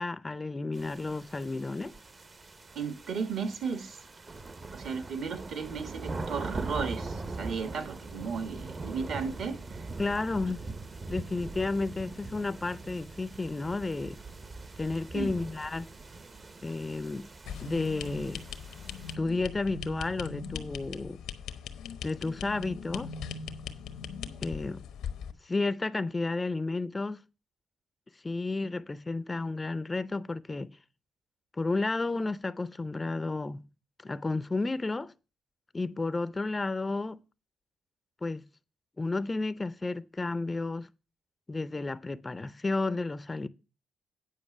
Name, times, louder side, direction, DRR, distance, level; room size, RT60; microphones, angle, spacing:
voice 1, 0.0-2.0 10.0-10.6 11.1-14.2 14.8-15.9 16.6-17.3 17.6-18.4 19.1-21.2 22.0-23.1 24.4-24.8 25.4-27.2 28.2-30.7 31.5-33.7 34.0-35.1 35.7-37.2 38.2-38.5 39.0-40.9 41.5-43.5, left 3 dB, 20° left, 0.5 m, -32 dB
sound 1, 0.7-19.1, right 3 dB, 30° right, 0.7 m, -42 dB
voice 2, 2.7-4.0 4.7-9.9 15.1-15.3, right 5 dB, 65° right, 1.4 m, -35 dB
sound 2, 17.5-25.3, left 6 dB, 85° left, 0.9 m, -40 dB
9.3 x 5.1 x 6.5 m
cardioid pair, 90°, 0 cm